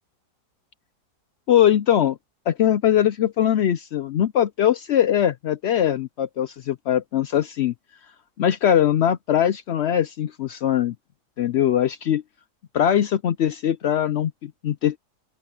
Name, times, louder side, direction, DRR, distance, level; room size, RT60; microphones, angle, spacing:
voice 1, 1.5-2.2 2.5-7.7 8.4-10.9 11.4-12.2 12.7-15.0, left 10 dB, 85° left, 0.6 m, -21 dB
open air
omnidirectional pair, 1.8 m